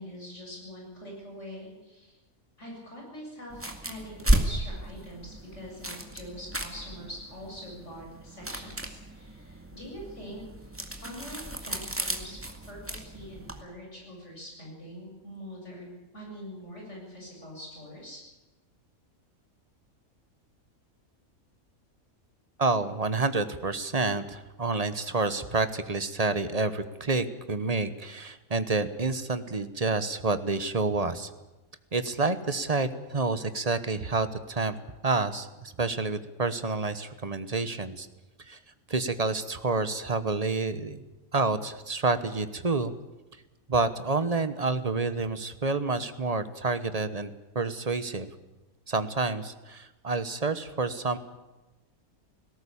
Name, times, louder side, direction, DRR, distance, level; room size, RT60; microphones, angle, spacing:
voice 1, 0.0-2.2 2.6-12.4 12.7-18.2, equal, 55° left, -1 dB, 7.8 m, -44 dB
sound 1, 3.5-13.6, right 1 dB, 10° right, 2.1 m, -33 dB
voice 2, 22.6-31.3 31.9-34.8 35.0-38.1 38.5-38.6 38.9-41.0 41.3-42.9 43.7-47.3 47.5-48.3 48.9-51.2, right 3 dB, 30° right, 12 dB, 1.1 m, -28 dB
19.0 x 17.0 x 8.5 m, 1.1 s
omnidirectional pair, 1.5 m